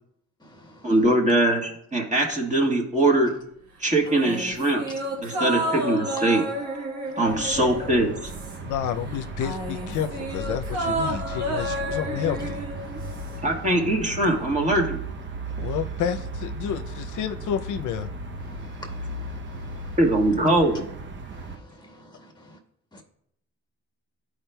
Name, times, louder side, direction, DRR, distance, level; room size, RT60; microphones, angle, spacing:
voice 1, 0.8-3.3 3.8-4.8 5.2-6.4 7.2-8.3 13.4-15.0 20.0-20.8, right 1 dB, 25° right, 1.4 m, -22 dB
sound 1, 4.0-8.8 9.1-13.4 13.7-13.8, right 1 dB, 65° right, 1.3 m, -31 dB
sound 2, 7.3-21.6, right 3 dB, 40° right, 0.7 m, -36 dB
voice 2, 8.6-12.6 15.6-18.1, left 9 dB, 75° left, 0.5 m, -30 dB
voice 3, 12.9-13.4 18.5-20.0 21.3-22.6 22.9-23.0, equal, 15° left, 1.4 m, -49 dB
12.5 x 4.8 x 2.2 m
cardioid pair, 90°, 30 cm